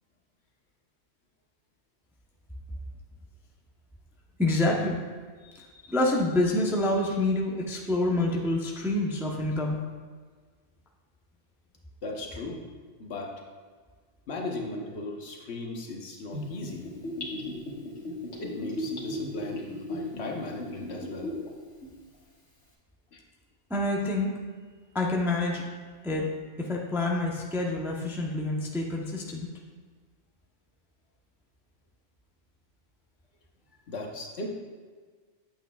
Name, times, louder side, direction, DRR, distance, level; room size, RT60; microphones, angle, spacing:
voice 1, 4.4-5.0 5.4-9.8 23.7-24.3 24.9-25.6 26.0-26.3 26.6-29.5, left 2 dB, 5° right, -1 dB, 0.6 m, -27 dB
voice 2, 12.0-12.6 13.0-13.3 14.3-16.9 18.4-21.3 23.1-23.2 33.9-34.5, left 2 dB, 65° left, 0 dB, 1.2 m, -37 dB
Gurgling / Bathtub (filling or washing), 16.3-21.5 21.8-21.9, left 1 dB, 80° left, 1.7 m, -36 dB
8.9 x 7.9 x 2.3 m, 1.5 s
omnidirectional pair, 1.2 m